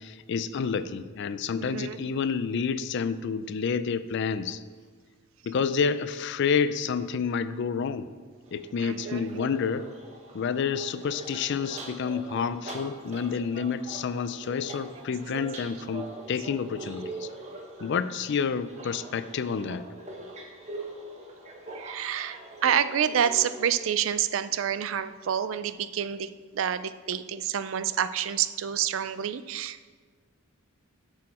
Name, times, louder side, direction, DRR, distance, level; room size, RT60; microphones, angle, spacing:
voice 1, 0.0-4.6 5.4-8.1 8.5-9.8 10.3-17.3 17.8-19.8, left 6 dB, 55° left, 13 dB, 0.4 m, -29 dB
voice 2, 1.6-2.0 8.8-9.3 21.7-29.9, right 9 dB, 65° right, 13 dB, 0.4 m, -28 dB
sound 1, 8.4-23.7, right 2 dB, 35° right, 1.3 m, -42 dB
10.5 x 6.4 x 4.2 m, 1.5 s
head